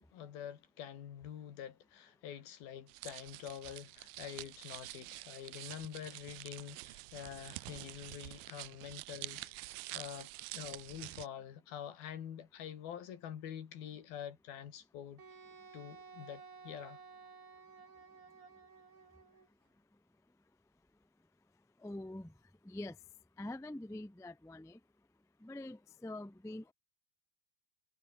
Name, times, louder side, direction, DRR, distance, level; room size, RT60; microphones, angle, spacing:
voice 1, 0.1-15.2 15.7-17.0, left 9 dB, 70° left, 4.1 m, -47 dB
sound 1, 2.9-11.3, right 23 dB, 80° right, 2.3 m, -47 dB
Wind instrument woodwind instrument, 15.2-19.5, right 5 dB, 50° right, 6.2 m, -55 dB
voice 2, 21.8-22.3 22.6-22.9 23.4-24.8 25.4-26.7, left 1 dB, 5° left, 0.6 m, -45 dB
omnidirectional pair, 4.5 m